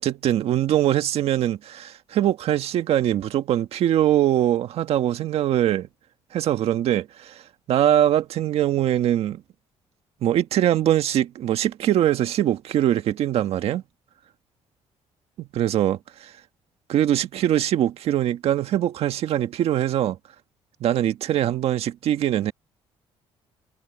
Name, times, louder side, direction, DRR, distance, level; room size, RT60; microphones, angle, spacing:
voice 1, 0.0-5.9 6.3-7.4 7.7-9.4 10.2-13.8 15.4-16.0 16.9-20.2 20.8-22.5, right 11 dB, 65° right, 1.5 m, -22 dB
cardioid pair, 150°, 11 cm